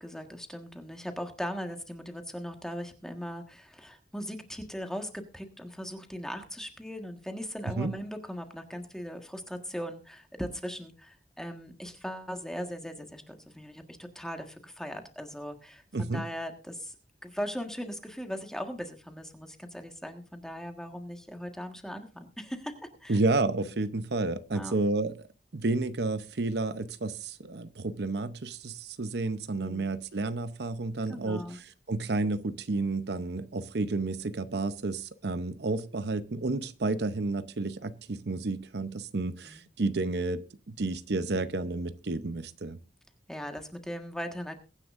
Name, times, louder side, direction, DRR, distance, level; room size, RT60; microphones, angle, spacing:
voice 1, 0.0-16.9 17.2-23.2 24.5-24.7 29.6-29.9 31.1-31.6 39.4-39.6 43.3-44.6, equal, 5° left, 5 dB, 1.5 m, -39 dB
voice 2, 15.9-16.2 23.1-25.2 25.5-42.8, right 3 dB, 65° right, 12 dB, 0.7 m, -31 dB
22.5 x 9.9 x 2.5 m, 0.33 s
head